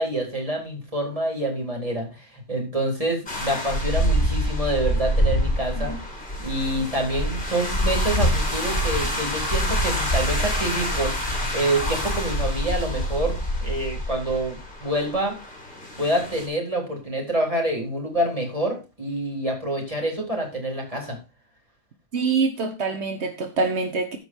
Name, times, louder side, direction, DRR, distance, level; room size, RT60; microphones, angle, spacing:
voice 1, 0.0-5.9 6.4-11.1 11.5-15.4 16.0-21.2, right 1 dB, 30° right, 4.0 m, -27 dB
sound 1, 3.3-16.5, equal, 50° left, 3.7 m, -26 dB
voice 2, 22.1-24.2, right 4 dB, 85° right, 1.5 m, -25 dB
14.5 x 5.3 x 4.6 m
omnidirectional pair, 1.1 m